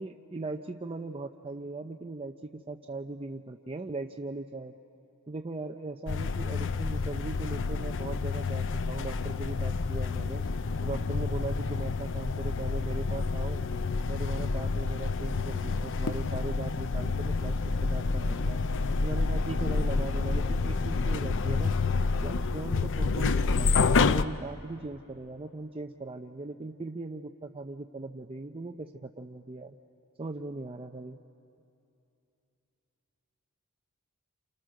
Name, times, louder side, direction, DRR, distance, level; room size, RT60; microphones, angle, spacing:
voice 1, 0.0-4.7 5.3-10.4 10.8-13.6 14.1-18.6 19.0-21.7 22.2-29.8 30.2-31.2, right 2 dB, 25° right, 3 dB, 0.6 m, -39 dB
sound 1, 6.1-24.2, left 4 dB, 60° left, 0.6 m, -29 dB
29.0 x 28.5 x 6.5 m, 2.7 s
head